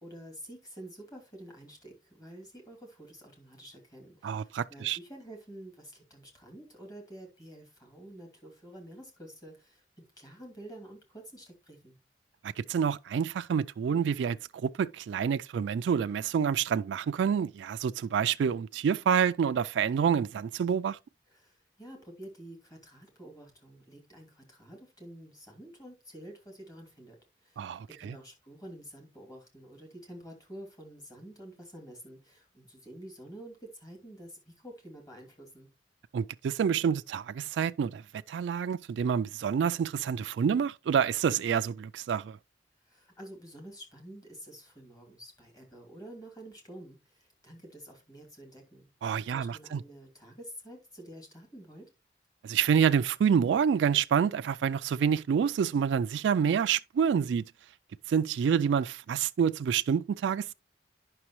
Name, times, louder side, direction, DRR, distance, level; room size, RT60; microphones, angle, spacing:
voice 1, 0.0-12.0 21.3-35.7 42.8-51.9, right 1 dB, 20° left, 2.6 m, -49 dB
voice 2, 4.2-5.0 12.4-21.0 27.6-28.2 36.1-42.4 49.0-49.8 52.4-57.4 58.1-60.5, right 7 dB, 80° right, 0.3 m, -28 dB
9.8 x 6.0 x 3.0 m
head